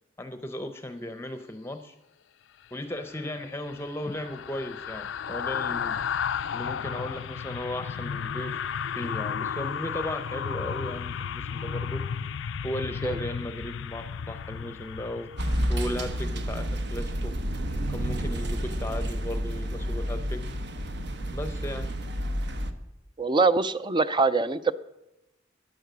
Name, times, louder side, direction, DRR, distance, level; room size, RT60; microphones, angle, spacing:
voice 1, 0.2-2.0 2.7-6.0 6.5-8.6 8.9-12.0 12.6-15.3 15.7-17.3 17.9-20.4 21.3-21.9, left 1 dB, 15° left, 8 dB, 0.7 m, -36 dB
sound 1, 3.0-16.4 16.7-16.9, left 7 dB, 75° left, 0.4 m, -33 dB
sound 2, 15.4-22.7, equal, 65° right, 1.1 m, -30 dB
voice 2, 23.2-24.7, right 4 dB, 25° right, 13 dB, 0.4 m, -23 dB
13.5 x 10.0 x 6.1 m, 0.97 s
head